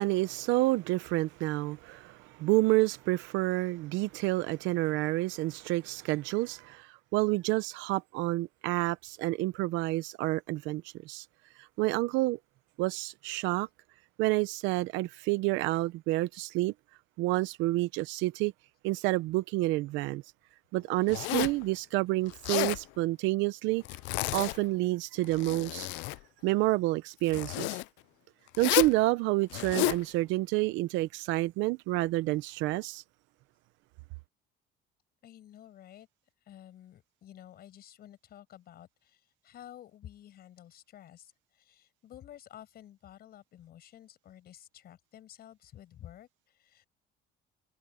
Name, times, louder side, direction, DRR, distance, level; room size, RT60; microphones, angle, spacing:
voice 1, 0.0-11.3 11.6-12.4 12.8-13.7 14.2-16.7 17.2-18.5 18.8-20.2 20.7-23.8 24.3-25.9 26.4-27.8 28.6-33.0, right 19 dB, 80° right, 0.8 m, -29 dB
Zipper (clothing), 21.1-21.6 22.3-22.8 23.8-24.6 25.2-26.2 27.3-27.8 28.5-29.0 29.5-30.0, left 23 dB, 80° left, 0.5 m, -31 dB
voice 2, 35.2-36.1 36.4-46.9, left 11 dB, 55° left, 6.0 m, -52 dB
cardioid pair, 120°, 19 cm